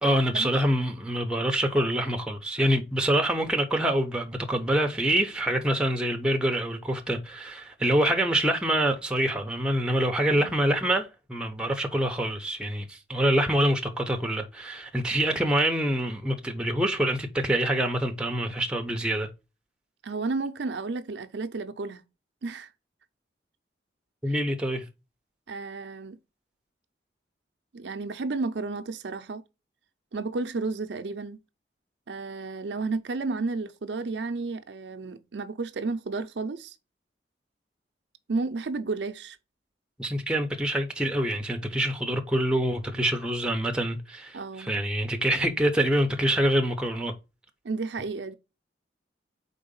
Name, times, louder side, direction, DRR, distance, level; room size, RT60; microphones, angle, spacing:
voice 1, 0.0-19.3 24.2-24.8 40.0-47.1, right 1 dB, 5° right, 0.7 m, -26 dB
voice 2, 20.0-22.0 22.4-22.7 24.3-24.4 25.5-26.2 27.7-29.4 30.1-31.4 32.1-36.7 38.3-39.4 44.3-44.7 47.6-48.3, right 3 dB, 75° right, 0.5 m, -32 dB
4.5 x 3.9 x 5.3 m
head